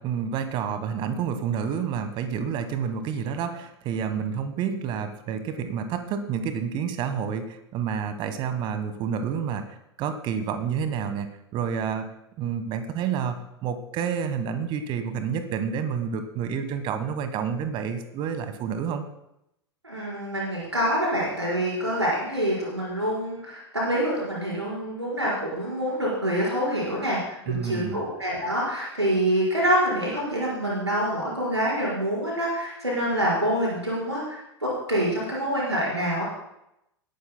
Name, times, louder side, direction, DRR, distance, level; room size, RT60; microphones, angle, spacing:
voice 1, 0.0-12.1 12.4-19.0 27.0-27.1 27.5-28.1, right 7 dB, 35° right, 10 dB, 1.3 m, -29 dB
voice 2, 19.8-36.2, equal, 85° right, -6 dB, 4.7 m, -26 dB
20.0 x 12.0 x 2.2 m, 0.82 s
figure-of-eight pair, 95°, 14 cm